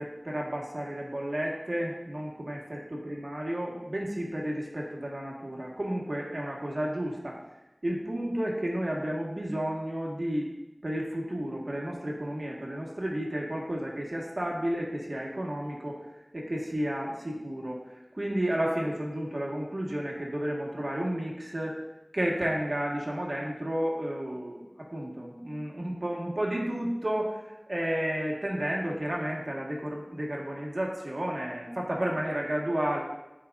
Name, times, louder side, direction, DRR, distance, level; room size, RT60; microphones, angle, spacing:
voice 1, 0.0-7.4 7.8-10.5 10.8-16.0 16.3-17.8 18.1-21.8 22.1-24.6 24.9-33.0, right 1 dB, 60° right, -3 dB, 1.5 m, -32 dB
11.5 x 5.0 x 2.5 m, 0.96 s
wide cardioid pair, 45°, 0 cm